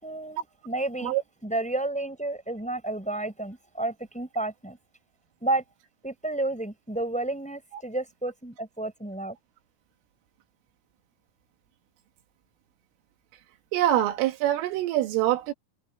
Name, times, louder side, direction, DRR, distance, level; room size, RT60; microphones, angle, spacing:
voice 1, 0.0-1.1 1.4-4.8 5.4-5.6 6.0-9.4, right 2 dB, ahead, 4.9 m, -31 dB
voice 2, 13.7-15.5, right 13 dB, 85° right, 4.2 m, -24 dB
omnidirectional pair, 5.7 m